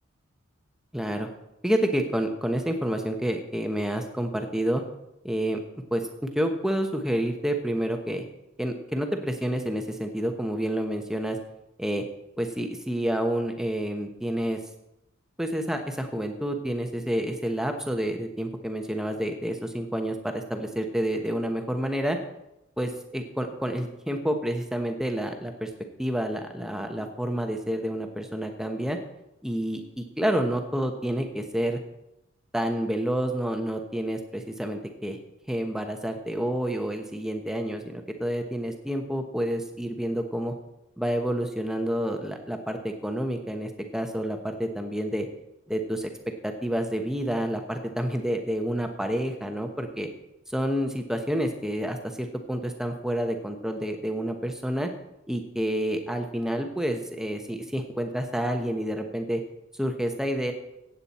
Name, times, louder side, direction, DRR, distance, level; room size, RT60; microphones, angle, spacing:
voice 1, 0.9-1.3 1.6-4.8 5.2-5.6 5.9-6.1 6.3-8.2 8.6-11.4 11.8-12.0 12.4-14.6 15.4-22.2 22.8-25.7 26.0-29.0 29.4-31.8 32.5-35.2 35.5-40.5 41.0-45.3 45.7-46.1 46.4-50.1 50.5-54.9 55.3-59.4 59.8-60.5, equal, 5° right, 4 dB, 1.1 m, -29 dB
15.0 x 9.1 x 4.3 m, 0.88 s
head